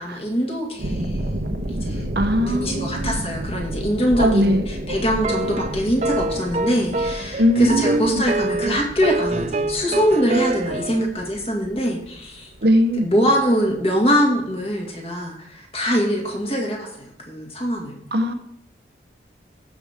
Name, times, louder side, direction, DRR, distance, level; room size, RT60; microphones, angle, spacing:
voice 1, 0.0-1.3 1.7-2.1 2.5-12.5 13.0-18.0, equal, 35° left, -1 dB, 2.2 m, -23 dB
sound 1, 0.8-13.4 13.7-14.0, right 1 dB, 90° right, 1.3 m, -31 dB
voice 2, 2.1-3.1 4.2-4.6 7.4-8.3 12.6-13.1 18.1-18.3, equal, 65° right, 7 dB, 0.9 m, -20 dB
sound 2, 4.9-11.0, right 2 dB, 40° right, 0.5 m, -26 dB
15.0 x 6.1 x 3.6 m, 0.75 s
head